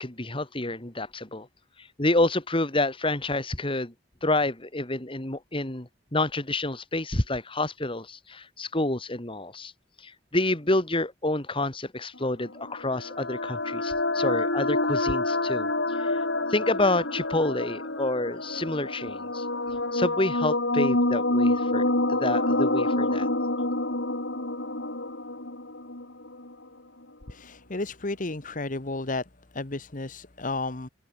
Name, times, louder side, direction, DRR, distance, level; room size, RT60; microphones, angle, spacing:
voice 1, 0.0-1.5 1.8-3.9 4.2-9.7 10.0-16.2 16.5-19.5 19.9-23.3, left 2 dB, 30° left, 2.6 m, -28 dB
sound 1, 12.4-26.5, left 2 dB, 80° left, 5.7 m, -27 dB
voice 2, 27.3-29.2 29.5-30.9, left 2 dB, 45° left, 1.4 m, -32 dB
head